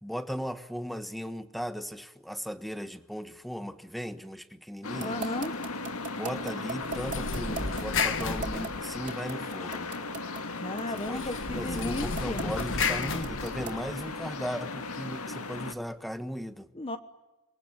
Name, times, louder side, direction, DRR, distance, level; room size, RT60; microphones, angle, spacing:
voice 1, 0.0-5.3 6.1-9.9 10.9-16.7, equal, ahead, 10 dB, 1.2 m, -37 dB
sound 1, 4.8-15.7, left 3 dB, 90° left, 1.9 m, -37 dB
voice 2, 5.0-5.5 10.6-12.5 16.7-17.0, left 2 dB, 25° left, 9 dB, 1.2 m, -35 dB
sound 2, 5.0-13.9, right 4 dB, 35° right, 3.7 m, -38 dB
sound 3, 6.8-9.3 11.0-14.1, left 4 dB, 60° left, 1.8 m, -33 dB
28.0 x 22.0 x 9.7 m, 1.1 s
head